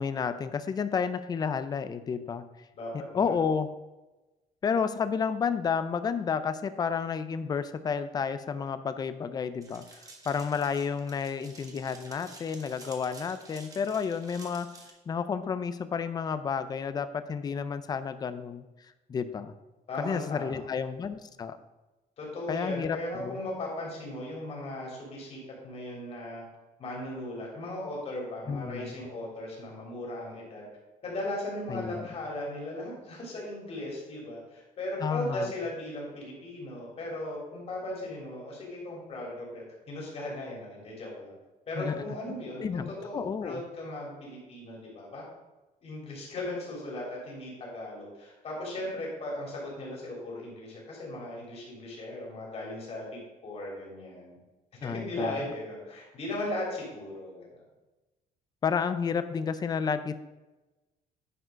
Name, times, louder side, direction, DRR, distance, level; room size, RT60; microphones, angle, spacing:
voice 1, 0.0-2.4 3.1-3.7 4.6-10.0 10.3-14.7 15.1-18.6 19.1-19.5 20.0-21.6 22.5-23.4 28.5-28.9 31.7-32.1 35.0-35.5 41.8-42.0 42.6-43.6 54.8-55.3 58.6-60.2, left 6 dB, 25° left, 11 dB, 0.5 m, -31 dB
voice 2, 2.7-3.3 19.9-20.7 22.2-26.4 26.8-30.7 31.0-41.4 41.7-45.2 45.8-54.4 54.8-57.5, left 1 dB, 40° left, -3 dB, 3.4 m, -37 dB
sound 1, 9.6-14.9, right 3 dB, 25° right, 1.4 m, -50 dB
9.9 x 4.8 x 5.1 m, 1.1 s
cardioid pair, 155°, 15 cm